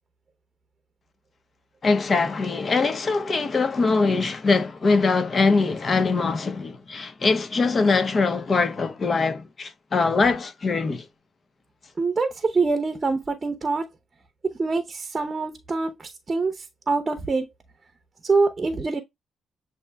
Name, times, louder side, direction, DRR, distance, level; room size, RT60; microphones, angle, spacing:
voice 1, 1.8-11.1, left 4 dB, 40° left, 0.9 m, -22 dB
voice 2, 12.0-13.9 14.6-15.9 16.3-16.6 16.9-17.5 18.2-19.0, right 3 dB, 30° right, 0.8 m, -24 dB
7.8 x 2.8 x 2.3 m
cardioid pair, 90°, 0 cm